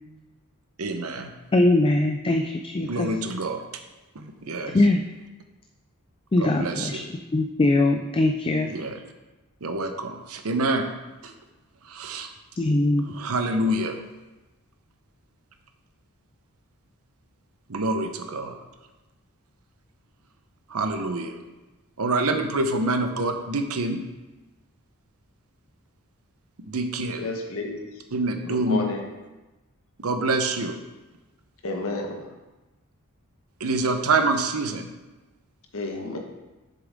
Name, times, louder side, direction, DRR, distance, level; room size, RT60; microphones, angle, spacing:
voice 1, 0.8-1.3 2.8-3.6 4.1-4.8 6.4-7.0 8.7-8.9 9.6-10.9 11.2-11.3 11.8-12.3 13.1-14.0 17.7-18.6 20.7-21.4 22.0-24.0 26.6-27.2 28.1-28.8 30.0-30.8 33.6-34.9, right 2 dB, 70° right, 6 dB, 0.8 m, -26 dB
voice 2, 1.5-3.1 4.7-5.0 6.3-7.0 7.3-8.7 12.6-13.1, left 2 dB, 25° left, 4 dB, 0.4 m, -21 dB
voice 3, 27.2-27.8 28.5-29.1 31.6-32.3 35.7-36.2, left 2 dB, 65° left, 1 dB, 1.2 m, -31 dB
7.2 x 6.9 x 3.5 m, 1.1 s
head